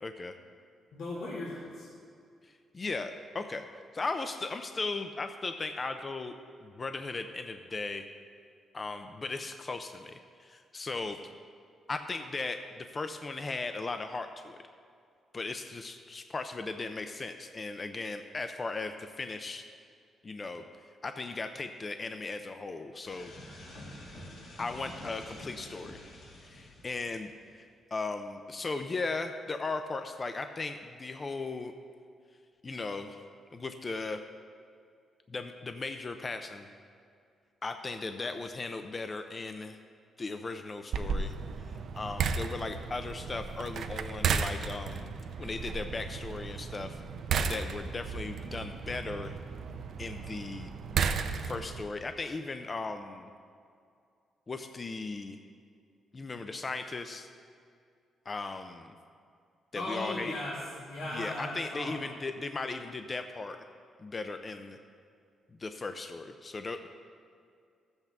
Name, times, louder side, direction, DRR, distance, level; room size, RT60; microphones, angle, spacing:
voice 1, 0.0-0.3 2.4-3.7 3.9-6.3 6.6-8.1 8.7-11.3 11.9-14.6 15.3-19.6 20.2-20.6 21.0-23.3 24.6-26.0 26.4-27.7 27.9-31.7 32.6-33.2 33.5-34.2 35.3-36.7 37.6-39.8 40.2-47.0 47.5-49.3 50.0-50.7 51.4-53.3 54.5-55.4 56.1-57.3 58.3-58.9 59.7-60.4 61.1-63.6 64.0-64.8 65.5-66.9, left 3 dB, 30° left, 7 dB, 0.4 m, -37 dB
voice 2, 0.9-1.9 59.7-62.0, left 1 dB, 90° left, -7 dB, 2.0 m, -37 dB
sound 1, 23.0-27.5, left 1 dB, 70° left, 2.3 m, -48 dB
sound 2, 40.9-51.8, right 6 dB, 65° right, 0.5 m, -34 dB
14.5 x 8.0 x 3.6 m, 2.3 s
cardioid pair, 125°, 0 cm